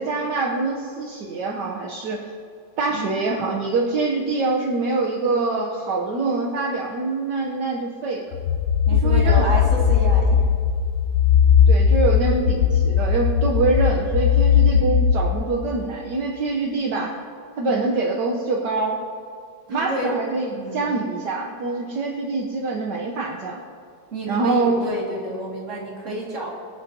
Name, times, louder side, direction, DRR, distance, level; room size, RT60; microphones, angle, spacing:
voice 1, 0.0-2.2 2.8-8.3 9.0-9.6 11.7-17.1 17.6-19.0 19.7-23.6 24.3-24.9, right 3 dB, 70° right, -2 dB, 1.6 m, -24 dB
sound 1, 8.3-15.1, left 7 dB, 75° left, 1.2 m, -18 dB
voice 2, 8.9-10.4 14.5-14.7 17.6-17.8 19.7-20.1 20.5-20.9 24.1-26.5, right 1 dB, 45° right, -4 dB, 2.5 m, -30 dB
24.5 x 8.3 x 2.8 m, 2.3 s
omnidirectional pair, 1.9 m